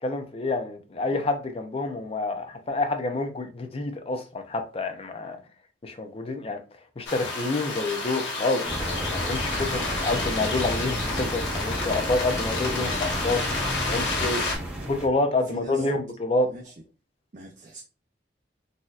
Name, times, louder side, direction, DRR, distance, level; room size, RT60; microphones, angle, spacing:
voice 1, 0.0-5.4 5.8-6.6 7.0-13.6 13.9-14.4 14.9-16.5, left 2 dB, 30° left, 0.5 m, -28 dB
sound 1, 7.0-14.6, left 3 dB, 80° left, 1.3 m, -30 dB
sound 2, 8.6-15.1, equal, 5° right, 0.8 m, -32 dB
voice 2, 12.7-13.1 13.4-15.1 15.4-15.9 16.4-16.7 17.3-17.8, right 2 dB, 40° right, 0.5 m, -45 dB
4.0 x 2.6 x 2.4 m
head